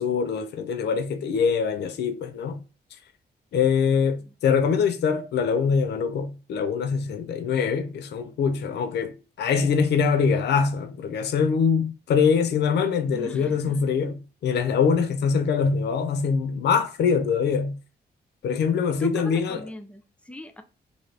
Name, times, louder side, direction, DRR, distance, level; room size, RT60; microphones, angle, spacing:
voice 1, 0.0-2.6 3.5-17.8 18.4-19.7, left 6 dB, 80° left, 0.5 m, -23 dB
voice 2, 13.1-13.7 19.0-20.6, left 2 dB, 5° left, 0.4 m, -39 dB
2.9 x 2.7 x 3.2 m
wide cardioid pair, 155°, 17 cm